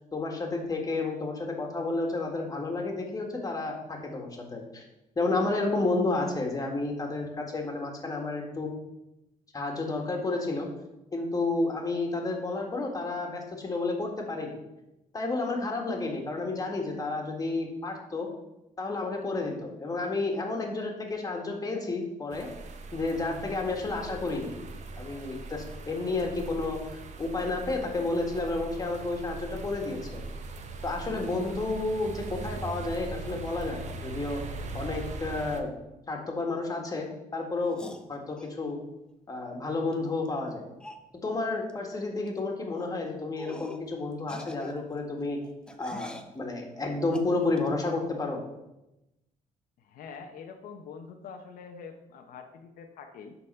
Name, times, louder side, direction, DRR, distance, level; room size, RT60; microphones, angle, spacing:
voice 1, 0.1-4.8 5.2-8.7 9.5-10.7 11.1-14.6 15.1-18.3 18.8-22.5 22.9-24.5 25.0-30.2 30.8-34.4 34.7-35.7 36.1-37.8 38.1-38.8 39.3-40.7 41.2-45.4 45.8-48.4, left 3 dB, 25° left, 1 dB, 1.8 m, -31 dB
sound 1, 22.3-35.6, right 3 dB, 55° right, 1.0 m, -40 dB
sound 2, 37.7-38.6 39.9-40.0 40.3-40.4 40.8-41.1 41.7-41.9 42.2-42.4 42.8-42.9 43.4-43.9 44.2-46.3 47.1-47.7, left 1 dB, 5° left, 0.7 m, -45 dB
voice 2, 49.8-53.4, left 5 dB, 85° left, 4 dB, 0.9 m, -45 dB
11.5 x 4.2 x 5.6 m, 0.94 s
cardioid pair, 125°, 14 cm